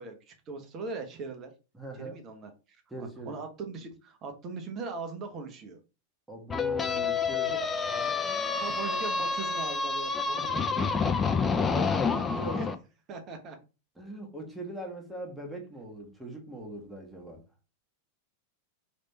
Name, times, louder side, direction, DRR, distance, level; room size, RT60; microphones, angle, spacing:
voice 1, 0.0-1.5 1.9-5.8 7.5-7.6 8.6-10.6 11.7-12.8 13.1-13.6, right 4 dB, 30° right, 1.0 m, -40 dB
voice 2, 1.7-2.2 2.9-3.3 6.3-7.5 10.4-11.1 14.0-17.4, right 1 dB, 5° right, 1.5 m, -41 dB
sound 1, 6.5-12.7, left 5 dB, 20° left, 0.5 m, -28 dB
3.3 x 3.2 x 4.1 m
figure-of-eight pair, 90°, 0 cm